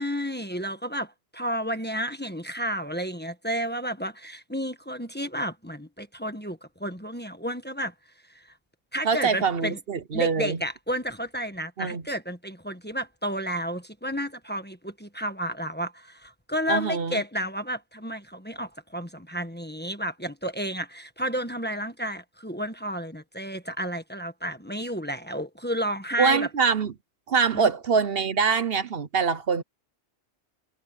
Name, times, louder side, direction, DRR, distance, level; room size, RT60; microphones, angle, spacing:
voice 1, 0.0-7.9 8.3-8.5 8.9-9.8 10.1-26.5 27.5-27.6, equal, 10° left, 1.3 m, -31 dB
voice 2, 9.0-10.6 11.8-12.0 16.7-17.2 26.2-26.9 27.3-29.6, right 5 dB, 60° right, 1.1 m, -24 dB
omnidirectional pair, 1.1 m